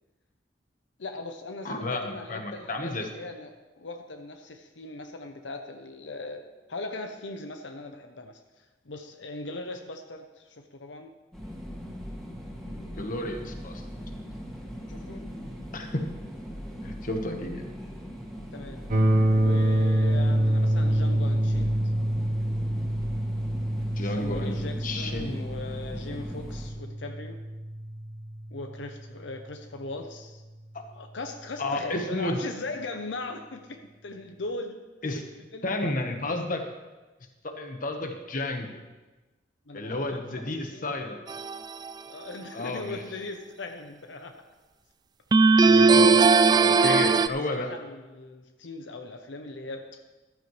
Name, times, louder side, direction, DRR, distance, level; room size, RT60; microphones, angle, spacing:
voice 1, 1.0-6.4 6.7-11.1 14.9-15.3 18.5-18.8 19.3-21.9 24.0-27.4 28.5-30.4 30.9-35.2 35.5-35.9 39.7-40.4 40.7-41.2 42.1-44.4 45.6-45.9 46.5-49.8, left 2 dB, 90° left, 5 dB, 0.8 m, -39 dB
voice 2, 1.6-3.1 12.7-13.8 15.7-16.1 16.8-17.7 23.9-25.4 30.7-30.8 31.6-32.4 35.0-35.2 35.6-36.6 37.4-38.7 39.7-41.1 42.5-43.0 45.7-46.1 46.6-47.7, left 2 dB, 50° left, 4 dB, 1.3 m, -32 dB
sound 1, 11.3-26.7, equal, 5° left, 2.2 m, -40 dB
sound 2, 18.9-28.8, right 1 dB, 45° right, 1.2 m, -26 dB
sound 3, 41.3-41.9 45.3-47.3, right 4 dB, 25° right, 0.3 m, -18 dB
14.0 x 12.5 x 3.3 m, 1.2 s
head